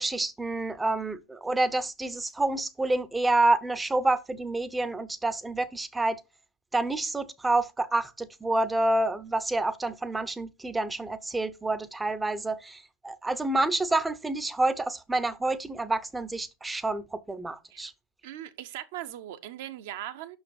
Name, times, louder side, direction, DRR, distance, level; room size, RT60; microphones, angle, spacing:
voice 1, 0.0-6.2 6.7-17.9, right 2 dB, 10° right, 0.7 m, -28 dB
voice 2, 18.2-20.4, right 12 dB, 50° right, 0.8 m, -39 dB
6.2 x 6.0 x 5.0 m
figure-of-eight pair, 90°, 0 cm